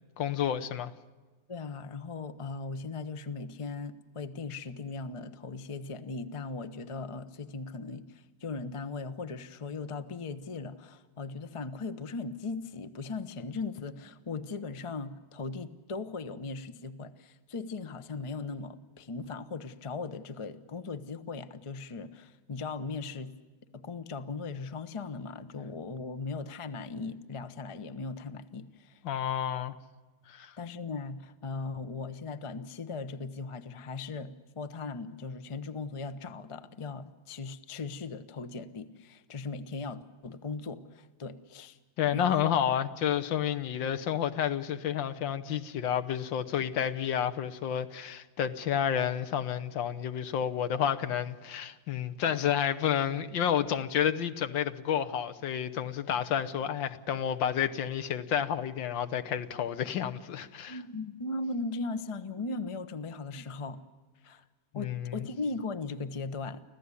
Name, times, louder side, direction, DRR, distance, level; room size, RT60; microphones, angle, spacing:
voice 1, 0.2-0.9 29.0-29.7 30.3-30.5 42.0-60.8 64.7-65.2, left 9 dB, 75° left, 1.7 m, -30 dB
voice 2, 1.5-23.4 23.7-29.0 30.6-41.8 42.1-42.5 60.7-63.8 64.2-64.4 64.7-66.6, left 4 dB, 30° left, 0.5 m, -38 dB
25.5 x 16.0 x 9.8 m
omnidirectional pair, 2.1 m